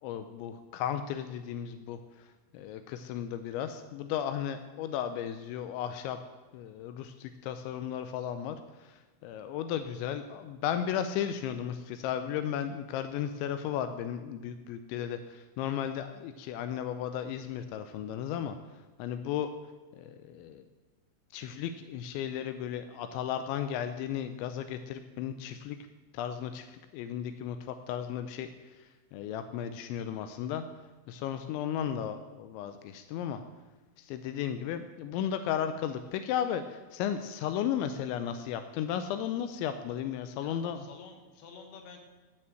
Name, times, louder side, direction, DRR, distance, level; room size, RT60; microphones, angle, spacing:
voice 1, 0.0-2.0 2.5-6.2 6.5-18.6 19.0-19.5 20.0-20.6 21.3-25.8 26.1-28.5 28.8-30.6 31.1-33.4 34.0-40.9, left 9 dB, 85° left, 9 dB, 2.6 m, -35 dB
voice 2, 40.4-42.0, left 5 dB, 65° left, 4 dB, 2.9 m, -50 dB
12.0 x 7.9 x 7.7 m, 1.3 s
omnidirectional pair, 6.0 m